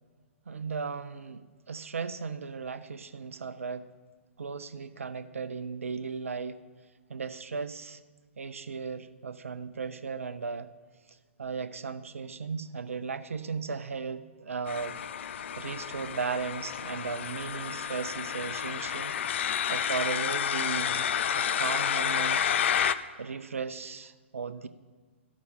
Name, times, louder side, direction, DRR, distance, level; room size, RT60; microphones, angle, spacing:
voice 1, 0.5-3.9 4.4-6.6 7.1-8.0 8.4-10.7 11.4-15.0 15.6-19.2 19.7-21.1 21.3-22.4 23.2-24.7, right 5 dB, 80° right, 12 dB, 0.5 m, -36 dB
sound 1, 14.7-22.9, left 8 dB, 60° left, 0.5 m, -30 dB
13.5 x 6.2 x 5.6 m, 1.4 s
hypercardioid pair, 120°, 7 cm